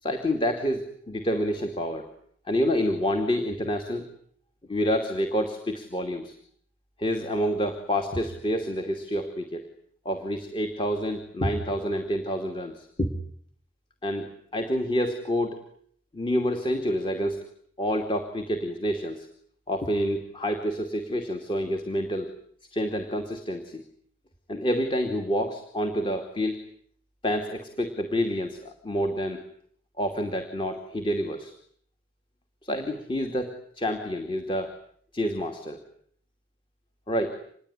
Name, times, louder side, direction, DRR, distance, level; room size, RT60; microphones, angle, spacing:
voice 1, 0.0-2.1 2.5-4.1 4.7-6.4 7.0-9.6 10.0-13.1 14.0-15.6 16.1-17.4 17.8-19.3 19.7-22.3 22.7-23.8 24.5-26.6 27.2-29.4 30.0-31.5 32.6-34.8 35.1-35.8 37.1-37.4, equal, 30° left, 6 dB, 2.5 m, -28 dB
27.0 x 21.0 x 10.0 m, 0.64 s
head